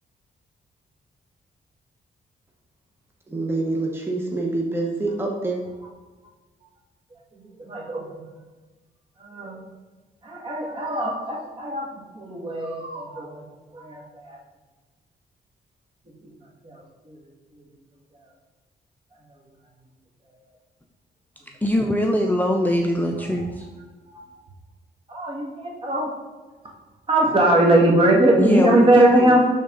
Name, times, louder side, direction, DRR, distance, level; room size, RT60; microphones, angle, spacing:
voice 1, 3.3-5.6, right 2 dB, 15° right, -1 dB, 1.1 m, -26 dB
voice 2, 7.7-8.2 9.2-9.6 10.2-11.9 12.2-13.4 13.7-14.0 16.7-16.8 25.1-26.1 27.1-29.4, right 1 dB, 30° right, -1 dB, 1.9 m, -20 dB
voice 3, 21.6-23.7 28.4-29.5, left 1 dB, 10° left, 2 dB, 0.5 m, -22 dB
12.0 x 4.0 x 3.8 m, 1.3 s
cardioid pair, 120°, 18 cm